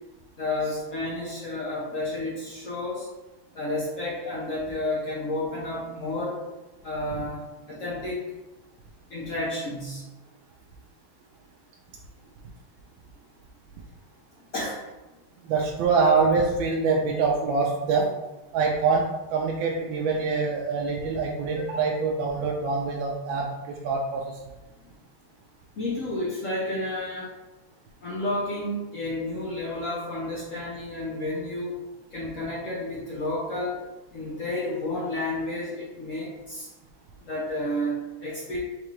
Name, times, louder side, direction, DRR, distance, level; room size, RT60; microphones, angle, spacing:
voice 1, 0.4-3.1 3.5-6.4 6.8-8.2 9.1-10.0 14.5-14.8 25.8-27.3 28.0-31.7 32.1-33.8 34.1-36.7 37.2-38.6, left 1 dB, 80° left, -6 dB, 0.7 m, -31 dB
voice 2, 15.4-18.1 18.5-24.4, right 4 dB, 75° right, -1 dB, 1.2 m, -25 dB
3.8 x 3.6 x 3.1 m, 1.1 s
omnidirectional pair, 2.4 m